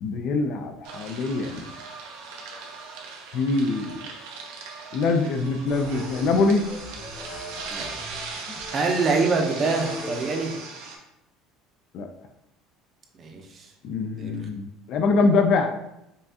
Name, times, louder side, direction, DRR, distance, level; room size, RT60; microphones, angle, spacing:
voice 1, 0.0-1.7 3.3-4.0 4.9-6.6 11.9-12.1 13.8-15.7, left 3 dB, 55° left, 6 dB, 0.4 m, -23 dB
sound 1, 0.8-11.0, right 4 dB, 85° right, 0.7 m, -39 dB
sound 2, 5.7-10.7, left 1 dB, 90° left, 1.3 m, -40 dB
voice 2, 8.7-10.5 13.1-13.7 14.2-14.3, right 4 dB, 35° right, 3 dB, 0.6 m, -25 dB
5.5 x 2.4 x 2.7 m, 0.86 s
cardioid pair, 140°, 0 cm